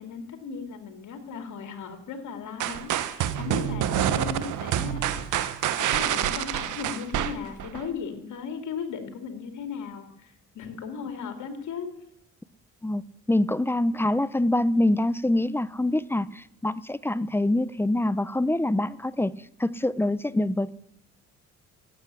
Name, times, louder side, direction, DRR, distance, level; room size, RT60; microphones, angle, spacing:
voice 1, 0.0-11.9, left 6 dB, 75° left, 2.6 m, -37 dB
sound 1, 2.6-7.9, right 11 dB, 85° right, 1.0 m, -27 dB
voice 2, 13.3-19.3 19.6-20.7, left 1 dB, 10° left, 0.5 m, -25 dB
12.5 x 8.2 x 9.9 m
cardioid pair, 90°, 30 cm